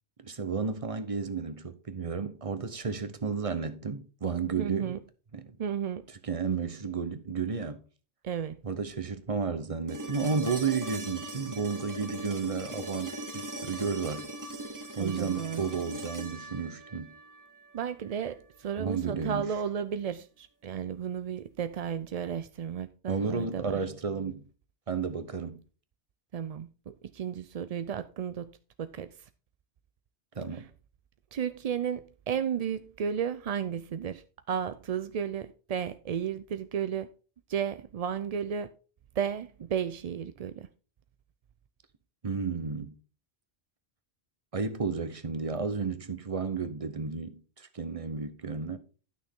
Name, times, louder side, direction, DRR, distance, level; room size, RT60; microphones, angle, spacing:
voice 1, 0.2-5.0 5.3-5.5 6.2-7.8 8.6-14.3 15.0-17.1 18.8-19.5 23.1-24.5 24.9-25.6 30.3-30.6 42.2-42.9 44.5-48.8, right 5 dB, 35° right, 0.9 m, -32 dB
voice 2, 4.6-5.0 5.6-6.0 8.2-8.6 15.0-15.6 17.7-23.8 26.3-28.5 28.8-29.1 30.5-30.6 31.3-37.1 37.5-38.7 39.2-40.7, right 8 dB, 55° right, 0.4 m, -33 dB
sound 1, 9.9-17.9 20.1-20.2, right 1 dB, 15° right, 1.3 m, -40 dB
12.0 x 6.2 x 3.6 m
omnidirectional pair, 1.1 m